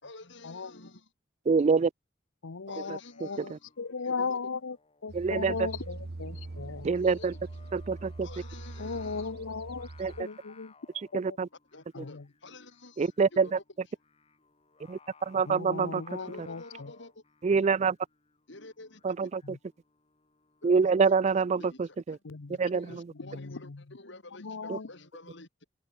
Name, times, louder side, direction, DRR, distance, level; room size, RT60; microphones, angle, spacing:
voice 1, 0.0-1.1 2.7-3.7 4.0-4.4 7.0-7.3 8.2-9.3 10.1-10.2 11.7-13.5 16.2-17.2 18.5-19.3 20.6-20.9 21.6-22.2 22.7-25.6, left 2 dB, 60° left, 3.8 m, -49 dB
voice 2, 1.5-1.9 2.8-3.6 5.1-5.6 6.8-7.3 7.7-8.3 10.0-10.1 11.1-11.5 13.0-13.6 14.9-16.0 16.4-16.5 17.4-18.0 19.0-19.6 20.6-22.2 22.6-23.1 24.7-24.8, right 5 dB, 35° right, 0.3 m, -26 dB
voice 3, 2.4-4.8 5.0-6.9 8.8-9.9 10.2-10.7 11.3-11.4 11.9-12.3 15.5-16.9 19.4-19.6 22.2-22.6 23.1-23.8 24.4-24.9, left 4 dB, 80° left, 0.8 m, -37 dB
Singing, 2.7-21.1, left 5 dB, 30° left, 1.9 m, -61 dB
sound 1, 5.1-10.2, right 2 dB, 55° right, 0.8 m, -43 dB
head